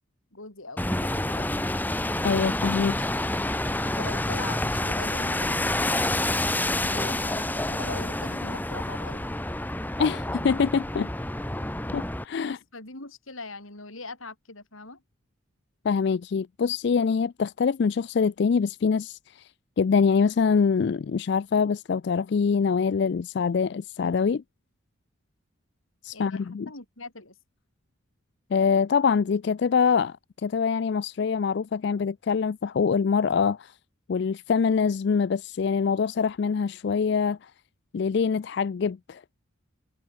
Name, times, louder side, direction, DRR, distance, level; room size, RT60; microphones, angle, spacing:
voice 1, 0.3-1.5 3.8-6.6 6.9-9.3 12.4-15.0 26.1-27.4, left 3 dB, 85° left, 5.9 m, -41 dB
sound 1, 0.8-12.2, left 1 dB, 10° left, 1.2 m, -28 dB
voice 2, 2.2-3.1 10.0-11.1 11.9-12.6 15.8-19.5 19.8-24.4 26.0-26.7 28.5-33.7 34.1-37.5 37.9-39.2, left 6 dB, 55° left, 0.3 m, -24 dB
head